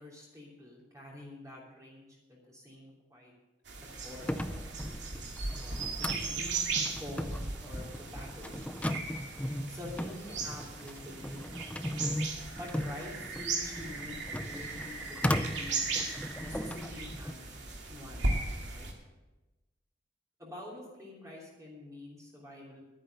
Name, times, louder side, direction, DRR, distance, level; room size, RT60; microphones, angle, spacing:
voice 1, 0.0-3.3 4.0-4.4 5.6-6.6 7.0-8.6 9.7-11.7 12.6-15.2 15.5-15.9 16.4-17.5 17.9-18.4 18.7-18.9 20.4-22.8, left 1 dB, 20° right, -4 dB, 3.1 m, -47 dB
sound 1, 3.7-18.9, right 3 dB, 80° right, 2.3 m, -37 dB
sound 2, 4.1-17.3, left 1 dB, 5° left, 0.5 m, -37 dB
11.5 x 9.7 x 6.7 m, 1.1 s
head